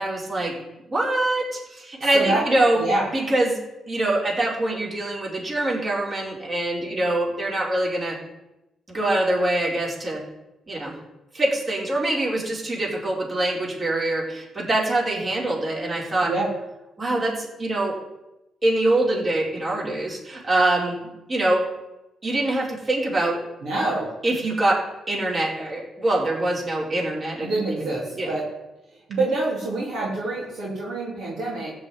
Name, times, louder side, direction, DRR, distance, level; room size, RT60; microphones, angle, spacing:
voice 1, 0.0-2.8 3.1-3.6 3.9-8.2 8.9-10.2 10.7-10.9 11.3-16.3 17.0-18.0 18.6-21.6 22.2-23.4 24.2-28.3, right 1 dB, 35° right, -3 dB, 5.0 m, -24 dB
voice 2, 23.6-24.1 27.4-28.4 29.1-31.7, right 2 dB, 65° right, -5 dB, 3.5 m, -26 dB
14.5 x 5.1 x 9.2 m, 0.95 s
hypercardioid pair, 45°, 0 cm